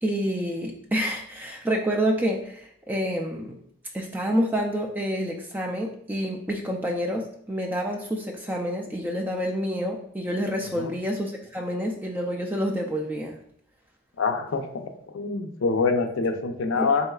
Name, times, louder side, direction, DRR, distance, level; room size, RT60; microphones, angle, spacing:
voice 1, 0.0-3.5 3.9-13.4 16.8-16.9, equal, 10° right, 0 dB, 0.4 m, -28 dB
voice 2, 14.2-14.9 15.1-17.1, left 4 dB, 70° left, 5 dB, 0.5 m, -25 dB
4.2 x 3.7 x 2.3 m, 0.67 s
head